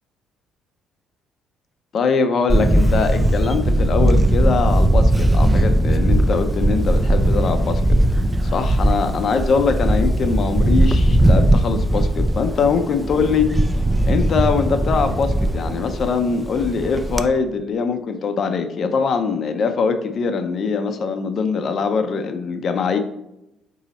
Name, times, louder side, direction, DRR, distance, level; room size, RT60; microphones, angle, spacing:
voice 1, 1.9-7.8 8.5-13.5 14.1-23.0, left 5 dB, 55° left, 7 dB, 0.5 m, -22 dB
Camera, 2.5-17.3, right 1 dB, 15° right, 0.3 m, -18 dB
4.0 x 2.7 x 4.0 m, 0.85 s
supercardioid pair, 70°, 0 cm